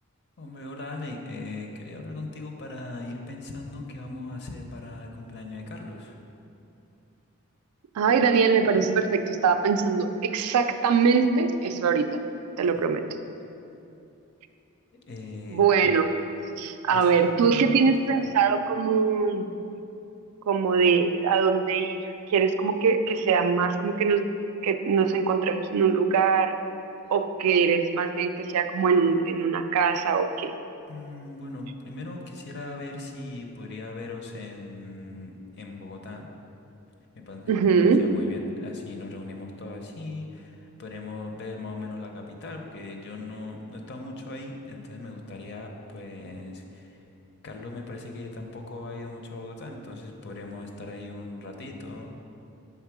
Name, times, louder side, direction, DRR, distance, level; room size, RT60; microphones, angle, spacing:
voice 1, 0.4-6.2 14.9-15.7 16.9-17.9 30.9-36.3 37.1-37.5 38.0-47.0 47.4-52.2, left 2 dB, 50° left, 3 dB, 0.6 m, -39 dB
voice 2, 8.0-12.1 12.6-13.0 15.5-16.1 16.6-19.5 20.5-22.0 22.3-24.3 24.6-26.5 27.1-30.5 37.5-38.0, right 5 dB, 90° right, 8 dB, 0.3 m, -22 dB
5.7 x 3.6 x 4.7 m, 2.8 s
head